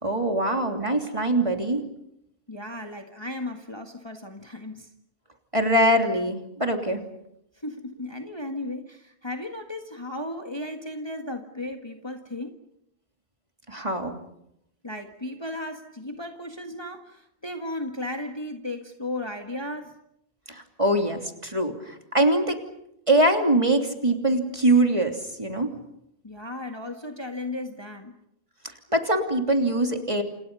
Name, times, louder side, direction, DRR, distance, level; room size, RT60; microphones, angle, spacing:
voice 1, 0.0-1.8 5.5-7.0 13.7-14.1 20.5-22.6 23.1-25.7 28.9-30.2, right 1 dB, 25° right, 4 dB, 3.1 m, -23 dB
voice 2, 2.5-4.9 7.5-12.6 14.8-20.0 26.2-28.2, left 1 dB, 20° left, 4 dB, 1.8 m, -35 dB
29.0 x 28.5 x 5.5 m, 0.78 s
omnidirectional pair, 1.2 m